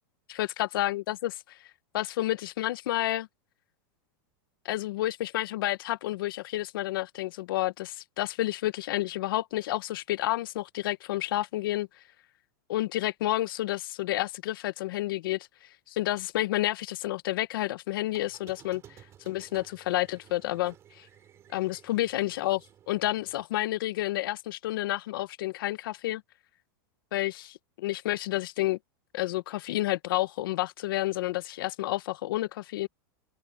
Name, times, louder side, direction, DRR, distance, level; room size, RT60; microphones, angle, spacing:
voice 1, 0.3-1.6 1.9-3.3 4.6-11.9 12.7-15.5 15.9-18.8 19.2-21.1 21.5-26.2 27.1-28.8 29.1-32.9, left 16 dB, 70° left, 0.8 m, -30 dB
Squeak, 18.1-23.4, right 10 dB, 20° right, 2.9 m, -55 dB
open air
supercardioid pair, 170°, 12 cm